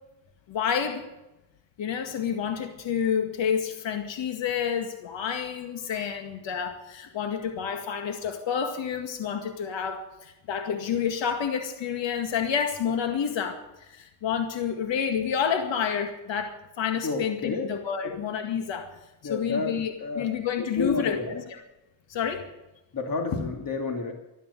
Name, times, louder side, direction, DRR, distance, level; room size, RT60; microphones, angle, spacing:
voice 1, 0.5-1.0 1.8-18.9 19.2-21.2 21.5-21.6 22.1-22.4, left 7 dB, 65° left, 6 dB, 2.1 m, -29 dB
voice 2, 17.0-17.7 18.0-18.2 19.2-21.5 22.9-24.1, left 3 dB, 45° left, 3 dB, 2.6 m, -31 dB
13.0 x 12.5 x 8.4 m, 0.96 s
supercardioid pair, 75°, 48 cm